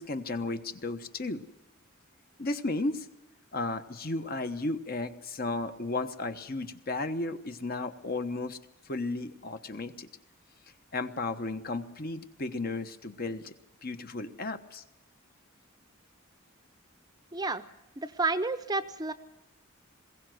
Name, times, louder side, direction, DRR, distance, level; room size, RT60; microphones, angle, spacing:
voice 1, 0.0-1.4 2.4-3.1 3.5-8.6 8.8-10.1 10.9-13.5 13.8-14.8, left 2 dB, 45° left, 9 dB, 1.2 m, -34 dB
voice 2, 17.3-17.6 18.0-19.1, right 3 dB, 20° right, 11 dB, 0.7 m, -30 dB
21.5 x 17.0 x 7.8 m, 0.95 s
head